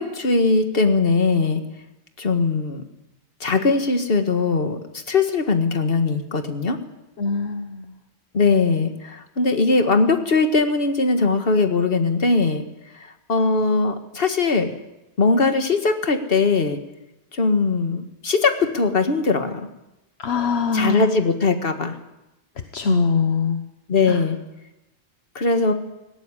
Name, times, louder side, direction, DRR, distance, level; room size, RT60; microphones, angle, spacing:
voice 1, 0.0-1.6 2.2-2.8 3.4-4.8 5.1-6.8 8.3-12.6 12.9-14.7 15.2-16.8 17.3-19.7 20.7-22.0 23.9-24.4 25.4-25.7, left 4 dB, 65° left, 7 dB, 1.9 m, -20 dB
voice 2, 7.2-7.9 20.2-21.1 22.7-23.6 24.1-24.2, left 4 dB, 80° left, 7 dB, 1.4 m, -22 dB
17.5 x 17.5 x 9.8 m, 0.95 s
omnidirectional pair, 1.1 m